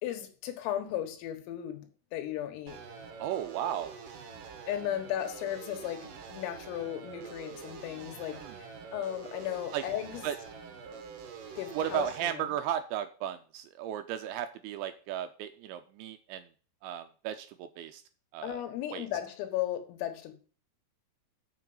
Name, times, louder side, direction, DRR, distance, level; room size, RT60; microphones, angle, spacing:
voice 1, 0.0-2.8 4.7-10.2 11.6-12.5 18.4-20.3, left 11 dB, 80° left, 4.1 m, -36 dB
sound 1, 2.7-12.2, right 6 dB, 70° right, 2.1 m, -46 dB
voice 2, 3.2-4.0 8.3-8.6 9.7-9.8 10.2-10.4 11.7-16.5 16.8-18.0 18.3-18.6 18.9-19.1, right 10 dB, 85° right, 2.6 m, -35 dB
7.2 x 6.8 x 7.8 m
omnidirectional pair, 6.0 m